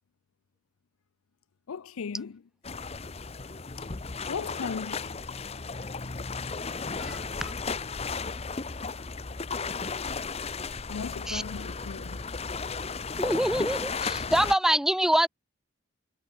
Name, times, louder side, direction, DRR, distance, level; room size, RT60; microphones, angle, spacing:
voice 1, 1.7-2.4 3.8-3.9 4.3-5.2 10.9-12.2, left 6 dB, 85° left, 0.5 m, -37 dB
sound 1, 2.6-14.5, left 4 dB, 30° left, 0.8 m, -34 dB
voice 2, 7.0-7.5 11.3-11.4 13.2-15.3, right 1 dB, ahead, 0.3 m, -25 dB
head